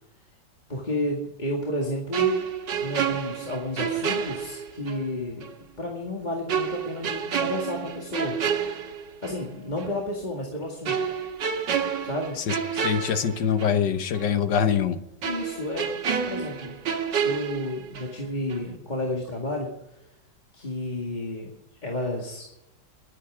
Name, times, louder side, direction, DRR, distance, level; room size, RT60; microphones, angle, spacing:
voice 1, 0.7-2.4 2.8-5.5 5.8-8.4 9.2-10.9 12.0-12.4 15.2-16.0 16.2-16.8 17.2-19.7 20.5-21.5 21.8-22.5, left 1 dB, 25° left, -2 dB, 2.0 m, -31 dB
sound 1, 2.1-5.1 5.4-5.5 6.5-9.5 9.8-10.0 10.9-13.9 14.1-14.3 15.2-18.2 18.5-18.7, right 7 dB, 75° right, 2.0 m, -29 dB
voice 2, 12.4-15.0, left 8 dB, 75° left, 10 dB, 1.7 m, -24 dB
23.0 x 8.7 x 5.0 m, 0.88 s
omnidirectional pair, 2.0 m